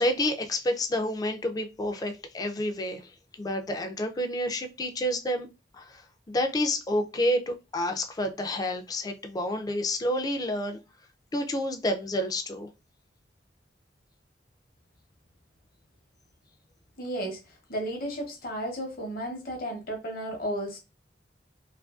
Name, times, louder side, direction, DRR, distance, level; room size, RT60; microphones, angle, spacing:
voice 1, 0.0-3.1 3.4-5.5 5.7-10.8 11.3-12.7, left 1 dB, 20° left, 0.3 m, -29 dB
voice 2, 17.0-20.8, equal, 55° left, 0.8 m, -34 dB
2.6 x 2.5 x 2.3 m
head